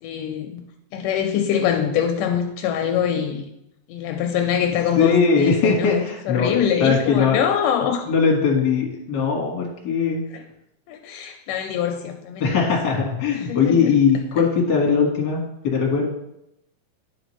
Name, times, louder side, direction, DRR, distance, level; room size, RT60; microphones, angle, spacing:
voice 1, 0.0-0.6 0.9-3.5 3.9-8.1 10.9-12.7 13.4-13.9, left 8 dB, 80° left, 4 dB, 2.1 m, -24 dB
voice 2, 5.0-7.4 8.1-10.2 12.4-16.1, left 5 dB, 45° left, -2 dB, 1.7 m, -20 dB
10.5 x 5.0 x 3.1 m, 0.83 s
omnidirectional pair, 3.9 m